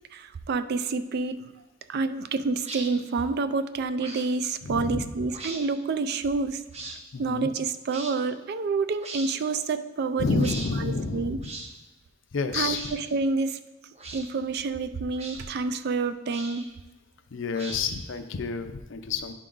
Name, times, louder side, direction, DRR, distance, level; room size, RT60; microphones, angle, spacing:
voice 1, 0.1-1.5 1.9-6.6 7.2-10.5 10.8-11.4 12.5-13.6 14.1-16.7, right 4 dB, 55° right, 11 dB, 0.4 m, -28 dB
sound 1, 2.6-2.9 4.0-4.3 5.3-5.6 6.7-7.0 7.9-8.1 9.0-9.3 10.4-10.7 11.4-11.7 12.6-13.0 13.9-14.3 15.2-15.4 16.3-16.7 17.5-18.1, right 2 dB, 35° right, 0.9 m, -39 dB
voice 2, 4.6-5.1 7.1-7.5 10.2-11.5 12.3-12.8 17.3-19.3, left 4 dB, 70° left, 8 dB, 0.5 m, -29 dB
10.0 x 3.7 x 3.8 m, 1.1 s
head